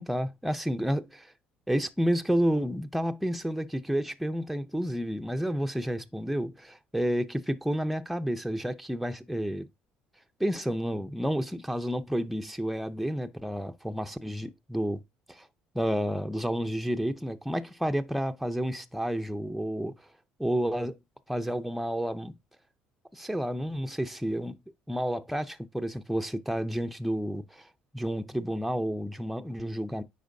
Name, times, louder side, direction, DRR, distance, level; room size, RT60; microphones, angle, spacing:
voice 1, 0.0-1.3 1.7-9.7 10.4-15.0 15.4-15.5 15.7-19.9 20.4-21.0 21.3-22.3 23.1-24.6 24.9-27.7 27.9-30.0, equal, ahead, 0.6 m, -30 dB
9.2 x 4.5 x 2.7 m
supercardioid pair, 90°, 3 cm